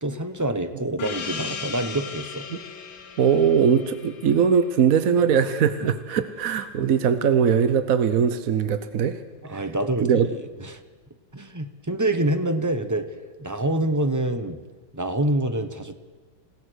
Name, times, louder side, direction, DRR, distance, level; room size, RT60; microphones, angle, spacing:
voice 1, 0.0-2.5 6.8-6.9 9.4-10.8 11.3-13.1 13.4-14.6 14.9-15.9, right 1 dB, 20° right, 9 dB, 0.5 m, -26 dB
Gong, 1.0-6.1, left 6 dB, 75° left, 2.0 m, -37 dB
voice 2, 3.2-9.2 9.5-9.7 10.0-10.3, right 7 dB, 55° right, 11 dB, 1.1 m, -21 dB
28.5 x 17.5 x 6.4 m, 1.3 s
omnidirectional pair, 2.1 m